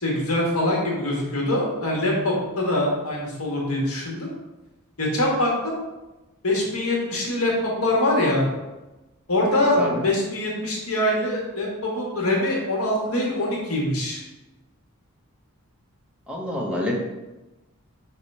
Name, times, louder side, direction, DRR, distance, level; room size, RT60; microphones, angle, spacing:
voice 1, 0.0-4.3 5.0-5.8 6.4-8.4 9.3-14.2, left 1 dB, 75° left, -2 dB, 1.6 m, -24 dB
voice 2, 16.3-17.0, left 1 dB, 5° right, -3 dB, 1.2 m, -26 dB
5.1 x 4.2 x 5.5 m, 1.1 s
head